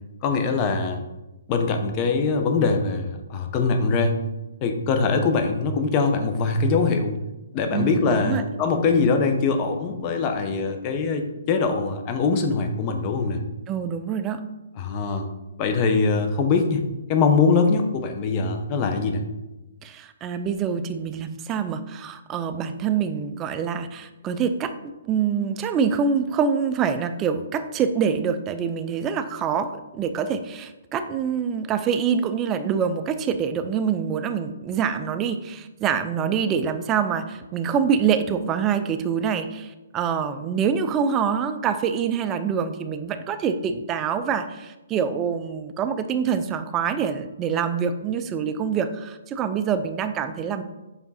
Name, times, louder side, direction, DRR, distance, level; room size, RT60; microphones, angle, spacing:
voice 1, 0.2-1.0 1.5-4.2 4.6-7.2 7.5-13.4 14.8-15.3 15.6-16.8 17.1-19.2, left 4 dB, 25° left, 6 dB, 0.7 m, -22 dB
voice 2, 7.7-8.4 13.7-14.4 19.8-24.7 25.0-50.6, right 7 dB, 15° right, 9 dB, 0.4 m, -25 dB
6.9 x 3.6 x 4.1 m, 1.0 s
hypercardioid pair, 165°, 0 cm